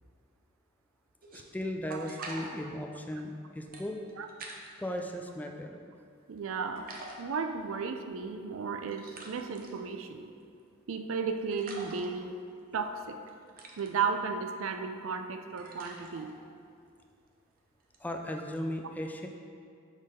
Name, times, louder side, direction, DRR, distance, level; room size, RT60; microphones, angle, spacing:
sound 1, 1.2-5.0 5.5-6.4 6.8-18.5, right 2 dB, 45° right, 0.7 m, -49 dB
voice 1, 1.3-4.0 4.8-5.8 18.0-19.3, left 1 dB, 10° left, 4 dB, 0.3 m, -37 dB
voice 2, 6.3-6.9 7.2-10.2 10.9-12.3 12.7-13.2 13.8-16.3, right 5 dB, 80° right, 7 dB, 0.4 m, -34 dB
6.3 x 3.7 x 5.0 m, 2.3 s
head